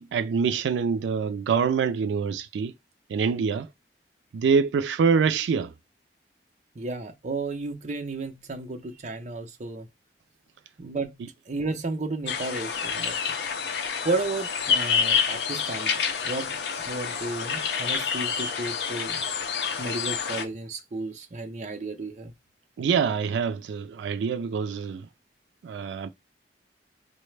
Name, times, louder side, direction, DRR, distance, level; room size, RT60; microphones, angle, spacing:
voice 1, 0.0-2.7 3.1-3.7 4.3-5.7 22.8-25.1 25.6-26.1, right 6 dB, 85° right, 0.3 m, -25 dB
voice 2, 6.8-9.9 10.8-11.2 11.5-13.2 14.0-15.9 16.2-19.2 19.8-22.3, right 3 dB, 40° right, 0.6 m, -33 dB
sound 1, 12.3-20.4, left 6 dB, 70° left, 0.5 m, -28 dB
4.6 x 2.1 x 3.2 m
head